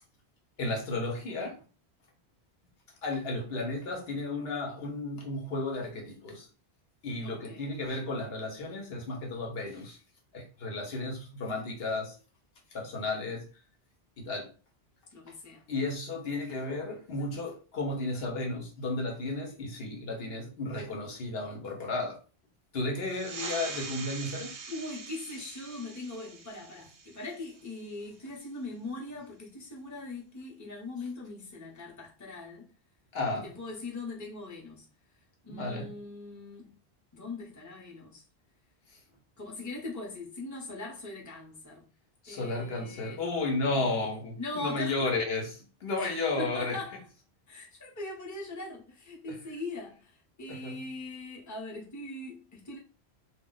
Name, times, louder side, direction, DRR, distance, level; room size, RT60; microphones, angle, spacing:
voice 1, 0.6-1.6 3.0-6.5 7.0-10.0 10.3-12.1 12.7-13.5 14.2-14.5 15.7-22.2 22.7-24.6 33.1-33.5 35.5-35.9 42.2-45.5 45.8-46.8 50.5-50.7, left 2 dB, 70° left, 1.0 m, -33 dB
voice 2, 7.2-7.7 15.1-15.6 24.7-32.7 33.4-34.9 35.4-36.8 37.1-38.2 39.4-41.8 42.3-43.2 43.7-44.1 44.4-45.2 46.0-47.0 47.5-52.8, left 2 dB, 20° left, 0.7 m, -41 dB
sound 1, 23.0-28.1, right 4 dB, 60° right, 0.7 m, -43 dB
2.3 x 2.1 x 3.7 m
omnidirectional pair, 1.1 m